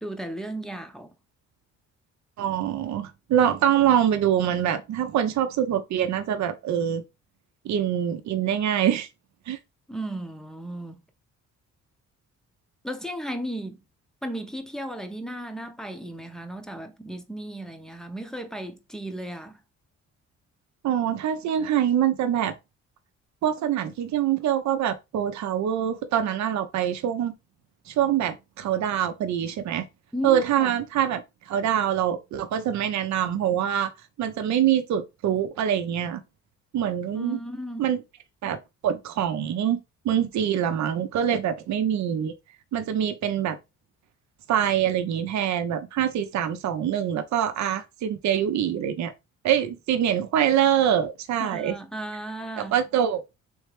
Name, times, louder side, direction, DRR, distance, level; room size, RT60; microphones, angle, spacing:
voice 1, 0.0-1.1 9.9-11.0 12.8-13.8 14.2-19.6 30.1-30.8 37.1-37.9 51.4-52.8, right 1 dB, ahead, 0.7 m, -35 dB
voice 2, 2.4-7.0 7.6-9.1 9.5-9.6 20.8-22.5 23.4-27.3 27.9-29.9 30.2-33.9 34.2-36.2 36.7-37.4 37.8-38.0 38.4-38.6 38.8-39.8 40.0-42.3 42.7-43.6 44.5-49.1 49.4-51.7 52.6-53.2, right 9 dB, 70° right, 0.7 m, -24 dB
3.5 x 3.2 x 3.3 m
cardioid pair, 90°, 30 cm